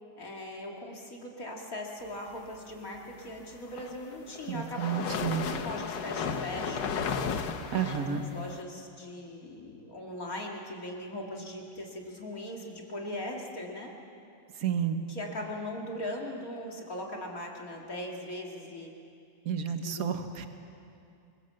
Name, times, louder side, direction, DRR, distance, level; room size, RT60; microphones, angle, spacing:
voice 1, 0.2-7.0 7.8-13.9 15.1-18.9 19.8-20.1, left 1 dB, 50° left, -1 dB, 2.8 m, -40 dB
sound 1, 3.5-8.6, left 6 dB, 90° left, 1.8 m, -34 dB
voice 2, 4.5-5.5 7.7-8.2 14.6-15.0 19.4-20.5, right 8 dB, 55° right, 7 dB, 1.7 m, -31 dB
27.5 x 21.0 x 7.7 m, 2.5 s
omnidirectional pair, 1.9 m